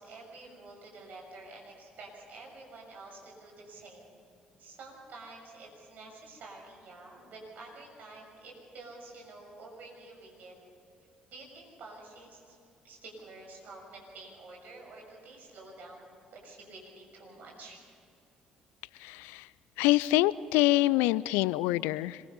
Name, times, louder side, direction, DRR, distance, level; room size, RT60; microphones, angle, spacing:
voice 1, 0.0-4.2 4.6-10.6 11.3-12.6 12.8-17.8, right 2 dB, 50° right, -1 dB, 6.7 m, -49 dB
voice 2, 19.0-19.5 19.8-22.2, left 17 dB, 65° left, 21 dB, 0.4 m, -26 dB
26.0 x 22.5 x 5.7 m, 2.6 s
figure-of-eight pair, 45°, 4 cm